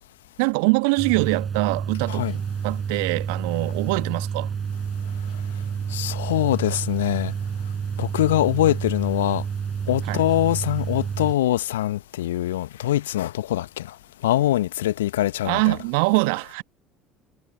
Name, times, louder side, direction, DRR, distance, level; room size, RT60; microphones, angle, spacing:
voice 1, 0.4-2.3 2.6-4.5 10.1-10.2 15.4-16.6, right 31 dB, 65° right, 1.4 m, -23 dB
sound 1, 1.0-11.3, right 7 dB, 35° right, 6.0 m, -29 dB
voice 2, 5.9-7.3 8.0-9.4 9.9-14.0 14.2-15.8, left 14 dB, 70° left, 1.3 m, -23 dB
figure-of-eight pair, 60°, 0 cm